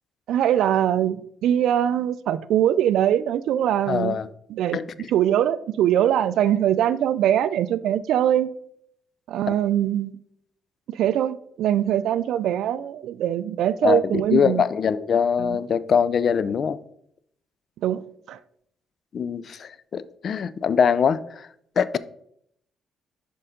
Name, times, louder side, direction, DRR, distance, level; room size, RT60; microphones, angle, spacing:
voice 1, 0.3-4.2 4.5-4.8 5.1-8.5 9.3-10.2 10.9-14.6 15.4-15.6 17.8-18.4, right 11 dB, 80° right, 0.3 m, -22 dB
voice 2, 3.9-4.3 4.7-5.1 13.8-16.8 19.1-21.5 21.8-22.0, left 7 dB, 55° left, 0.4 m, -23 dB
6.6 x 5.4 x 3.7 m
cardioid pair, 90°, 0 cm